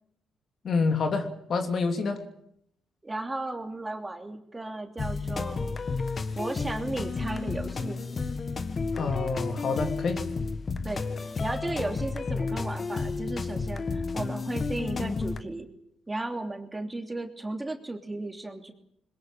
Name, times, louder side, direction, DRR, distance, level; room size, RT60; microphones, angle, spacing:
voice 1, 0.6-2.2 8.9-10.2, left 4 dB, 55° left, 6 dB, 3.0 m, -28 dB
voice 2, 3.0-5.7 6.3-8.0 10.8-15.7 16.1-18.7, right 2 dB, 15° right, 4 dB, 3.1 m, -35 dB
sound 1, 5.0-15.4, left 4 dB, 40° left, 1.7 m, -32 dB
22.0 x 20.5 x 8.8 m, 0.75 s
cardioid pair, 90°, 0 cm